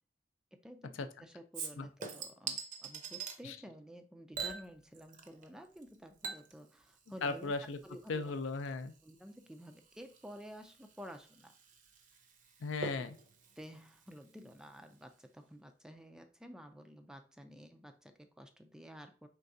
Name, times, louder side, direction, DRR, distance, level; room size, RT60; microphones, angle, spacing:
voice 1, 0.5-8.3 9.0-11.5 13.6-19.3, equal, 5° right, 7 dB, 0.3 m, -52 dB
Chink clink / Liquid, 1.5-3.4 4.3-5.5 5.8-14.8 15.1-15.2, right 5 dB, 40° right, 0.6 m, -46 dB
voice 2, 7.2-7.8 8.1-8.9 12.6-13.1, left 3 dB, 75° left, 9 dB, 0.4 m, -36 dB
4.7 x 3.3 x 2.6 m, 0.37 s
head